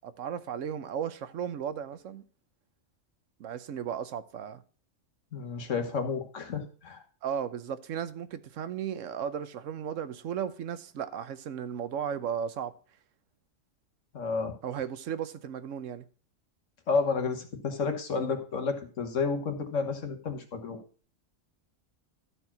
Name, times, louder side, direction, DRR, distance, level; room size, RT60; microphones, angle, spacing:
voice 1, 0.0-2.2 3.4-4.6 7.2-12.7 14.6-16.1, right 8 dB, 80° right, 1.1 m, -35 dB
voice 2, 5.3-7.0 14.1-14.5 16.9-20.8, left 4 dB, 75° left, 1.7 m, -31 dB
12.5 x 4.6 x 5.9 m
omnidirectional pair, 1.3 m